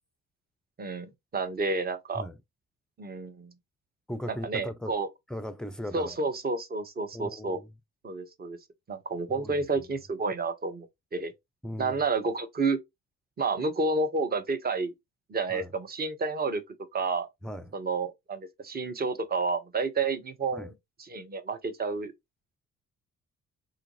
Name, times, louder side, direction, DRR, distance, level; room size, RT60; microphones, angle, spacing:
voice 1, 1.3-2.2 3.0-3.5 4.3-5.1 5.9-7.6 8.0-8.6 8.9-11.3 11.8-12.8 13.4-14.9 15.3-16.6 16.9-17.3 17.7-20.7 21.1-22.1, right 3 dB, 25° right, 0.8 m, -30 dB
voice 2, 4.1-4.9 5.3-6.2 7.1-7.7 9.4-9.6 11.6-12.0 15.5-15.7 17.4-17.7 20.5-20.7, equal, ahead, 0.4 m, -37 dB
3.6 x 2.4 x 3.0 m
figure-of-eight pair, 40°, 35 cm